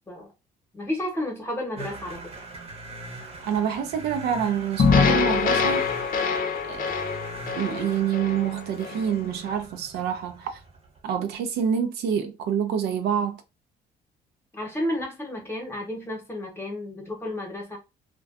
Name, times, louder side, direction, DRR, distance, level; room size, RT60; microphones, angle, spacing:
voice 1, 0.7-2.3 14.5-17.8, left 1 dB, 15° left, 0.9 m, -32 dB
sound 1, 1.8-11.2, right 3 dB, 35° right, 0.8 m, -42 dB
voice 2, 3.5-5.9 6.6-6.9 7.5-10.6 11.0-13.4, right 8 dB, 75° right, 0.5 m, -27 dB
sound 2, 4.8-9.1, left 5 dB, 55° left, 0.6 m, -24 dB
2.5 x 2.2 x 2.4 m
cardioid pair, 110°, 17 cm